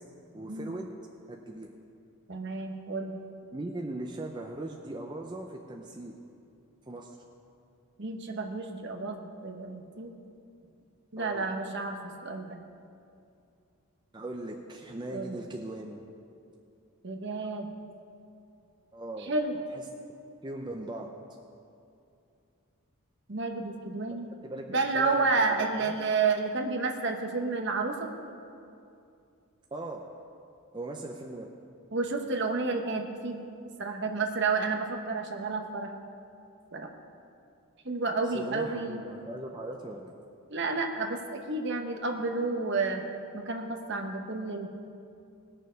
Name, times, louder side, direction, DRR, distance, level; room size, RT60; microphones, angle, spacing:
voice 1, 0.3-0.9 1.3-1.7 3.5-6.1 6.9-7.2 11.2-11.4 14.1-16.0 18.9-19.3 19.7-19.8 20.4-21.1 24.4-26.0 29.7-30.0 30.7-31.5 38.2-40.2, right 2 dB, 20° right, 1 dB, 0.5 m, -39 dB
voice 2, 2.3-3.2 8.0-10.1 11.1-12.6 15.1-15.3 17.0-17.7 19.3-19.6 23.3-24.3 24.7-28.1 31.9-33.4 33.8-35.9 36.7-36.9 37.8-39.0 40.5-43.0 43.3-44.7, right 3 dB, 50° right, 4 dB, 1.0 m, -30 dB
19.0 x 6.7 x 5.1 m, 2.5 s
head